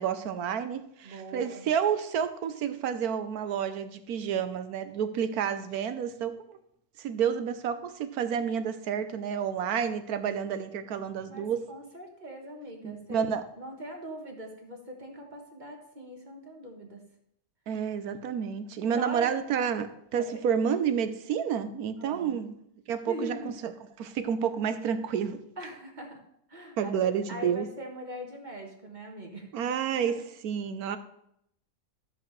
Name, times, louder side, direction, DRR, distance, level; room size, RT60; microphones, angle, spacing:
voice 1, 0.0-6.6 7.0-11.6 12.8-13.5 17.7-22.5 22.9-23.7 24.0-25.4 26.8-27.7 29.5-31.0, right 8 dB, 75° right, 10 dB, 1.3 m, -30 dB
voice 2, 1.0-1.7 11.2-13.2 13.6-17.0 18.9-19.3 20.2-20.4 22.0-22.4 23.1-23.5 25.6-26.2 26.5-29.5, equal, 30° right, 1 dB, 1.5 m, -41 dB
13.0 x 7.8 x 3.2 m, 0.74 s
omnidirectional pair, 1.6 m